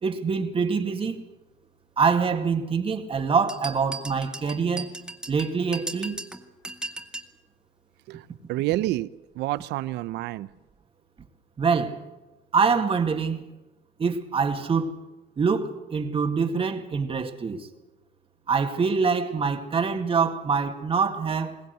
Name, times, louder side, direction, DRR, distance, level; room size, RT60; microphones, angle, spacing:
voice 1, 0.0-1.2 2.0-4.9 5.3-6.2 11.6-12.0 12.5-13.5 14.0-14.9 15.4-17.7 18.5-21.6, right 5 dB, 35° right, 2.2 m, -25 dB
sound 1, 3.5-7.3, right 2 dB, 5° right, 1.6 m, -37 dB
voice 2, 8.1-9.1 9.4-10.5, right 16 dB, 85° right, 0.7 m, -28 dB
22.0 x 18.0 x 8.1 m
cardioid pair, 110°, 17 cm